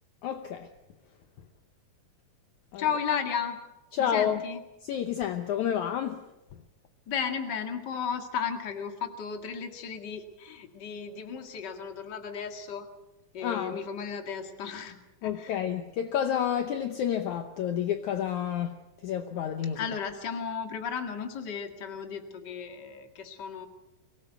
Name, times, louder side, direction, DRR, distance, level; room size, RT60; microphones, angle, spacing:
voice 1, 0.2-0.7 2.7-2.8 3.9-4.4 4.8-6.3 13.4-13.8 15.2-18.8 19.0-19.9, left 9 dB, 70° left, 7 dB, 2.1 m, -29 dB
voice 2, 2.8-3.6 4.0-4.6 7.1-12.9 13.3-15.5 19.7-23.7, left 6 dB, 35° left, 6 dB, 2.1 m, -34 dB
23.5 x 18.5 x 8.2 m, 1.0 s
omnidirectional pair, 4.0 m